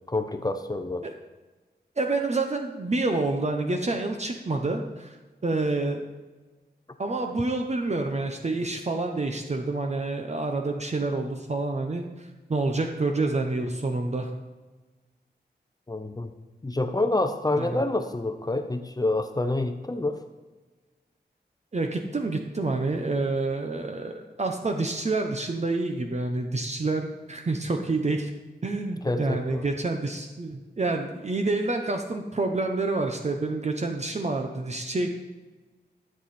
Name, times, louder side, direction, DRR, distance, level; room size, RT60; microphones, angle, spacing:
voice 1, 0.1-1.1 15.9-16.3 16.6-20.2 29.0-29.7, left 2 dB, 20° left, 7 dB, 0.7 m, -27 dB
voice 2, 2.0-5.2 5.4-6.0 7.0-14.3 16.9-17.0 17.5-17.8 21.7-28.3 28.6-35.1, right 2 dB, 40° right, 4 dB, 0.9 m, -28 dB
13.5 x 7.6 x 4.3 m, 1.3 s
wide cardioid pair, 100°, 18 cm